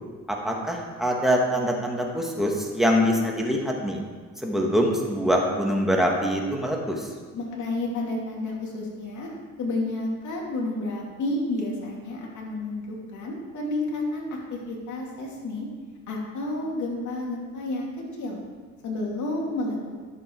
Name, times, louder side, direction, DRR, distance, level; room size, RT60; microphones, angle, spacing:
voice 1, 0.3-4.0 4.4-7.1, equal, ahead, -1 dB, 2.0 m, -24 dB
voice 2, 7.3-9.3 9.6-14.2 14.5-15.7 16.1-17.9 18.2-18.4 18.8-19.9, left 2 dB, 70° left, -2 dB, 2.8 m, -30 dB
11.5 x 7.7 x 4.7 m, 1.5 s
cardioid pair, 90°, 30 cm